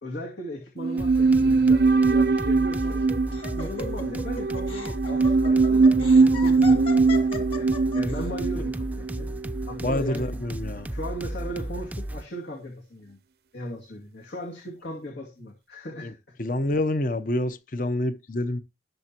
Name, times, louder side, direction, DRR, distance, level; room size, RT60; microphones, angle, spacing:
voice 1, 0.0-3.0 3.5-9.3 9.7-10.3 10.9-13.2 13.5-16.3, equal, 80° left, 2.4 m, -37 dB
sound 1, 0.8-10.1 10.4-10.5, right 4 dB, 60° right, 0.5 m, -22 dB
sound 2, 1.0-12.3, right 1 dB, 10° right, 0.5 m, -34 dB
Laughter, 2.7-8.2, left 4 dB, 30° left, 2.3 m, -37 dB
voice 2, 9.8-11.0 16.0-16.1 16.4-18.6, left 1 dB, 50° left, 0.8 m, -27 dB
20.0 x 6.8 x 2.9 m
head